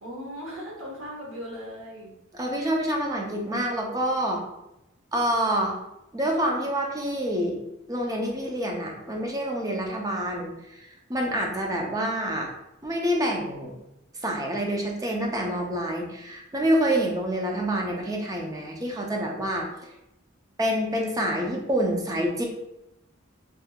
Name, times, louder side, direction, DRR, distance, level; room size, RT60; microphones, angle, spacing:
voice 1, 0.0-2.1, equal, 80° right, -3 dB, 1.0 m, -38 dB
voice 2, 2.4-4.4 5.1-5.8 6.1-7.6 7.9-10.5 11.1-12.5 12.8-13.7 14.2-19.7 20.6-22.4, equal, 15° right, 0 dB, 0.5 m, -27 dB
3.5 x 2.8 x 2.2 m, 0.88 s
head